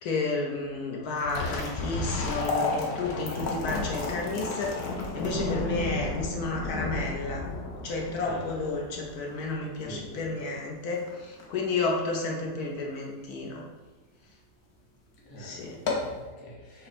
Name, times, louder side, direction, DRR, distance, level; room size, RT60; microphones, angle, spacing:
voice 1, 0.0-4.8 5.1-7.4 7.8-13.6 15.4-15.8, left 3 dB, 70° left, 0 dB, 1.1 m, -31 dB
sound 1, 1.1-13.4 13.8-13.9 14.6-14.8 15.1-15.2 15.7-16.2, left 3 dB, 50° left, 0.9 m, -36 dB
Thunder, 1.2-10.0, left 3 dB, 90° left, 0.5 m, -34 dB
voice 2, 9.8-10.2 15.3-16.9, equal, 20° left, -5 dB, 0.7 m, -44 dB
5.9 x 2.1 x 4.1 m, 1.2 s
omnidirectional pair, 1.8 m